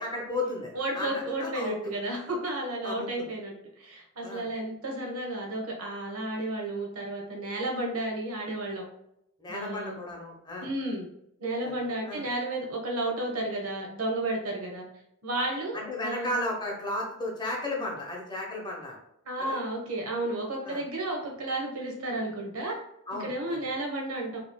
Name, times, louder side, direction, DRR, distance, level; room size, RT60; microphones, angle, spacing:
voice 1, 0.0-1.9 2.8-3.1 4.2-4.5 9.4-10.7 11.6-11.7 12.0-12.2 15.7-19.0 19.4-19.6 20.6-20.8 23.1-23.6, left 1 dB, 20° left, -2 dB, 0.9 m, -34 dB
voice 2, 0.7-8.8 9.5-10.0 10.6-11.1 11.4-14.8 15.2-16.3 19.2-22.8 23.2-24.4, right 1 dB, 75° right, 0 dB, 1.1 m, -32 dB
4.8 x 3.1 x 2.2 m, 0.77 s
head